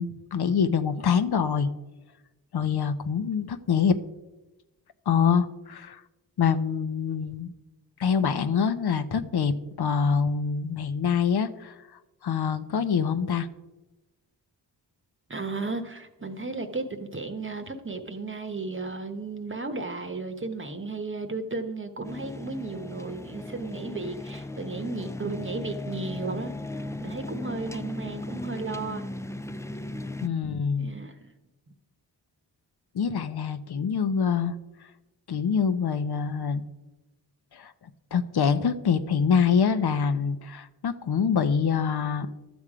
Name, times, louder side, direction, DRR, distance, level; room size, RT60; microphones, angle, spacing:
voice 1, 0.0-1.7 2.5-4.0 5.1-6.0 6.4-7.5 8.0-9.5 9.8-11.7 12.2-13.5 30.2-31.0 32.9-34.5 35.3-36.6 37.5-37.7 38.1-42.3, left 6 dB, 60° left, 12 dB, 0.8 m, -25 dB
voice 2, 15.3-26.5 27.0-29.1 30.8-31.3, right 3 dB, 30° right, 7 dB, 1.0 m, -34 dB
sound 1, 22.0-30.3, left 1 dB, 10° left, 0.3 m, -37 dB
12.0 x 7.2 x 5.0 m, 1.1 s
cardioid pair, 70°, 43 cm